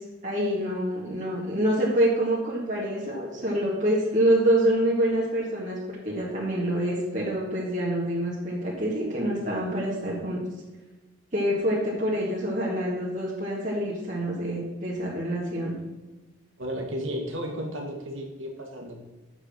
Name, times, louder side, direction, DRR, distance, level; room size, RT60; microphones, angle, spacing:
voice 1, 0.2-10.4 11.3-15.7, right 1 dB, 40° right, -6 dB, 2.2 m, -26 dB
voice 2, 16.6-19.0, equal, 70° right, 2 dB, 2.0 m, -33 dB
7.2 x 6.5 x 7.3 m, 1.2 s
head